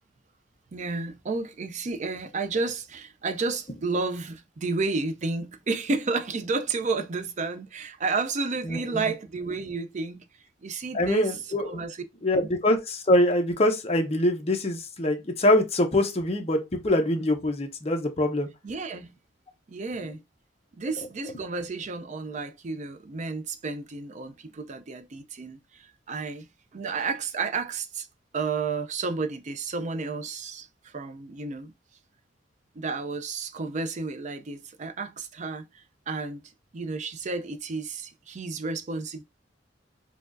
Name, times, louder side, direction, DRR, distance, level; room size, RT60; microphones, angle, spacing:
voice 1, 0.7-10.3 10.6-12.0 12.3-12.5 18.6-19.1 19.7-20.2 20.7-28.1 28.3-31.7 32.7-36.4 36.7-39.2, right 4 dB, 40° right, 0.4 m, -31 dB
voice 2, 8.7-9.0 10.9-11.8 12.2-18.5, left 1 dB, 35° left, 0.7 m, -24 dB
4.3 x 2.3 x 2.5 m
head